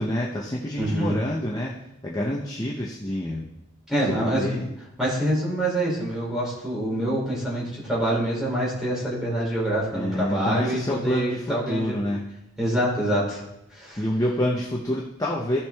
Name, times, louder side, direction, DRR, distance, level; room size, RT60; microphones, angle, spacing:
voice 1, 0.0-1.8 2.0-3.4 4.0-4.7 9.9-12.2 14.0-15.6, left 1 dB, 15° left, -3 dB, 0.7 m, -27 dB
voice 2, 0.8-1.2 3.9-4.5 5.0-12.0 12.6-13.4 13.7-14.0, right 1 dB, 5° right, -6 dB, 3.2 m, -26 dB
15.0 x 5.8 x 3.5 m, 0.87 s
head